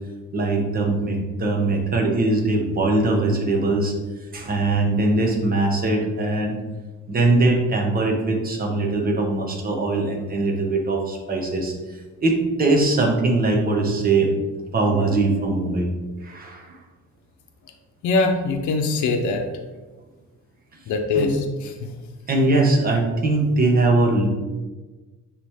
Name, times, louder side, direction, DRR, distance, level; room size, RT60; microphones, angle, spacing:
voice 1, 0.3-3.9 4.3-6.6 7.1-11.7 12.2-14.3 14.7-15.9 16.2-16.8 21.2-21.4 22.3-24.3, right 2 dB, 30° right, 0 dB, 1.2 m, -21 dB
voice 2, 18.0-19.4 20.9-21.9, left 3 dB, 75° left, 4 dB, 0.9 m, -22 dB
9.7 x 3.3 x 3.6 m, 1.2 s
cardioid pair, 165°, 30 cm